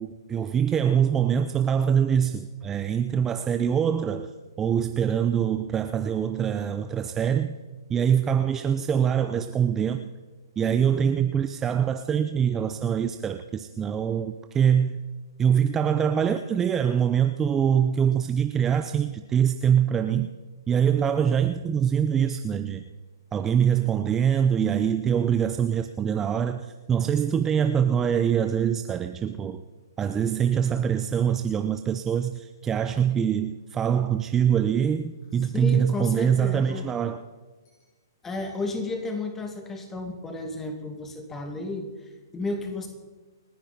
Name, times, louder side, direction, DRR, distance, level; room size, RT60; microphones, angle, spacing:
voice 1, 0.0-4.3 4.6-7.6 7.9-10.1 10.6-15.0 15.4-20.3 20.7-22.8 23.3-29.6 30.0-37.2, right 8 dB, 15° right, 0.6 m, -24 dB
sound 1, 33.4-35.7 36.3-37.0 37.7-38.0 38.5-38.7, left 3 dB, 45° left, 6.3 m, -55 dB
voice 2, 35.5-36.9 38.2-42.9, left 2 dB, 10° left, 2.4 m, -32 dB
29.0 x 10.0 x 4.3 m
figure-of-eight pair, 125°, 2 cm